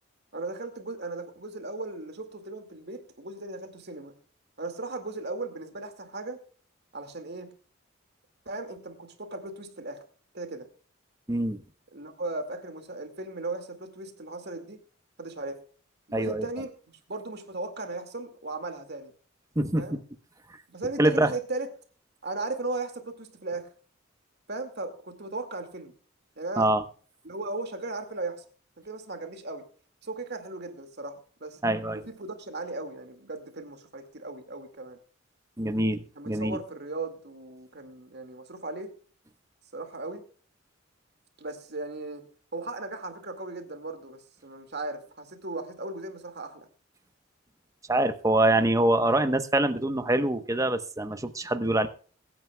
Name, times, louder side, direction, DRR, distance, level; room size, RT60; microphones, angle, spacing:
voice 1, 0.3-4.2 4.6-6.4 6.9-7.5 8.5-10.0 10.3-10.7 11.9-14.8 15.2-15.6 16.1-19.1 19.8-20.0 20.7-21.7 22.2-23.7 24.5-25.9 26.4-26.7 27.2-28.4 28.8-29.7 30.0-31.6 31.9-35.0 36.2-38.9 39.7-40.2 41.4-46.7, right 2 dB, 55° right, 6 dB, 2.1 m, -37 dB
voice 2, 11.3-11.6 16.1-16.4 19.6-20.0 21.0-21.3 26.6-26.8 31.6-32.0 35.6-36.6 47.9-51.9, right 1 dB, 15° right, 9 dB, 0.9 m, -24 dB
22.0 x 9.3 x 2.3 m, 0.42 s
head